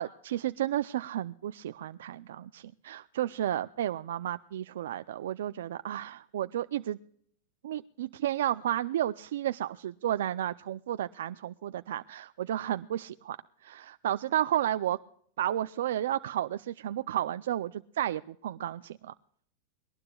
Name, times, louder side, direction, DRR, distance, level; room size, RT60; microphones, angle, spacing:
voice 1, 0.0-7.0 7.6-13.4 13.6-15.0 15.4-19.1, right 12 dB, 80° right, 12 dB, 0.5 m, -32 dB
22.0 x 19.0 x 2.3 m, 0.64 s
supercardioid pair, 170°, 0 cm